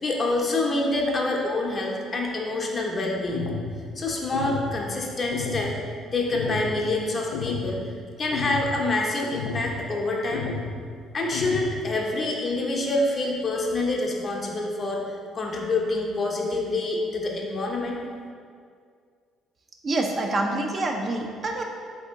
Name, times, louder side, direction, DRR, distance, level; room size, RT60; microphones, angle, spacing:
voice 1, 0.0-3.5 4.0-5.7 6.1-7.8 8.2-10.5 11.1-18.0, left 2 dB, 35° left, 0 dB, 0.6 m, -26 dB
sound 1, 3.3-3.7 4.3-4.7 5.3-5.7 6.3-6.7 7.3-7.7 8.3-8.7 9.3-9.7 10.3-10.7 11.3-11.7, left 5 dB, 70° left, 0.3 m, -31 dB
voice 2, 19.8-21.6, right 2 dB, 35° right, 2 dB, 0.4 m, -26 dB
4.2 x 2.7 x 3.5 m, 2.1 s
figure-of-eight pair, 50°, 0 cm